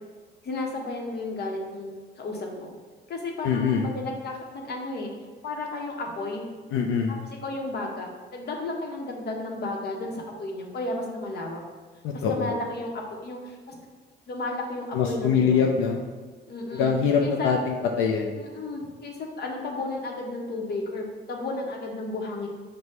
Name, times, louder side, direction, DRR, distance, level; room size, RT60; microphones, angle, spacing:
voice 1, 0.4-2.7 3.1-5.1 5.4-6.5 7.4-11.6 12.1-13.7 14.3-15.7 16.5-16.9 17.2-17.5 18.4-22.5, left 2 dB, 55° left, 1 dB, 0.9 m, -33 dB
voice 2, 3.4-3.8 6.7-7.1 12.0-12.5 14.9-16.0 16.7-18.4, left 6 dB, 90° left, 1 dB, 0.4 m, -23 dB
5.0 x 2.2 x 4.2 m, 1.5 s
cardioid pair, 90°, 20 cm